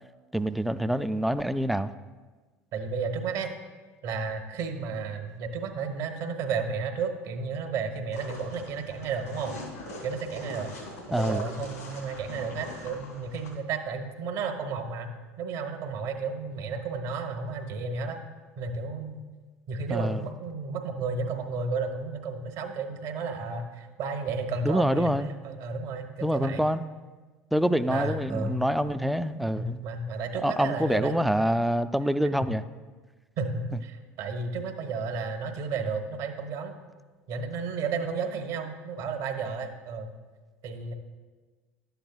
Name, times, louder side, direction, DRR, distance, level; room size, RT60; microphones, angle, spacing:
voice 1, 0.3-1.9 11.1-11.5 19.9-20.2 24.6-25.3 26.2-26.8 27.5-29.8 30.4-32.6, equal, ahead, 12 dB, 0.3 m, -26 dB
voice 2, 2.7-3.5 4.0-9.6 10.0-10.7 11.1-15.1 15.4-18.2 18.6-19.2 19.7-25.1 25.4-26.7 27.9-28.6 29.6-31.2 33.4-36.7 37.3-40.1 40.6-40.9, right 4 dB, 60° right, 5 dB, 1.1 m, -32 dB
sound 1, 8.1-13.5, left 2 dB, 85° left, 2.5 m, -42 dB
11.5 x 8.0 x 2.3 m, 1.3 s
hypercardioid pair, 70°, 8 cm